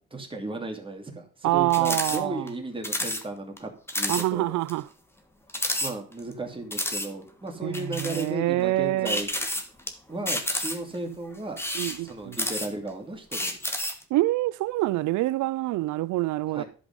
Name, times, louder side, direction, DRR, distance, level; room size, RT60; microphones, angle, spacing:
voice 1, 0.1-4.6 5.8-9.3 10.1-11.6 12.0-13.6 16.5-16.6, right 2 dB, 15° right, 2.6 m, -35 dB
voice 2, 1.4-2.5 4.1-4.9 7.6-9.2 11.7-12.4 14.1-16.6, right 17 dB, 75° right, 0.5 m, -26 dB
sound 1, 1.7-2.2 2.5-2.6 2.8-3.2 3.6-3.7 3.9-4.2 4.7-4.8 5.5-6.3 6.7-7.1 7.7-8.3 9.0-9.9 10.3-11.0 11.5-12.9 13.3-14.0, left 1 dB, 10° left, 1.6 m, -30 dB
11.0 x 5.2 x 5.4 m
cardioid pair, 90°, 30 cm